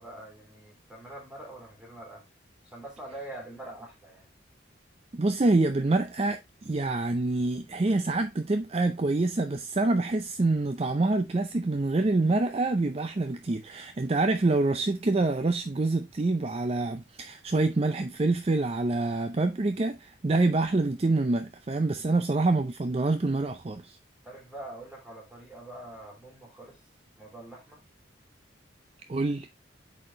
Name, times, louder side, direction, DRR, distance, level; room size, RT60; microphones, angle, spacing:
voice 1, 0.0-2.2 2.6-4.3 21.8-22.2 24.2-26.8 27.2-27.8, right 1 dB, 5° right, 3.1 m, -44 dB
voice 2, 5.1-24.0 29.1-29.5, right 2 dB, 30° right, 0.5 m, -26 dB
8.7 x 4.2 x 3.2 m
head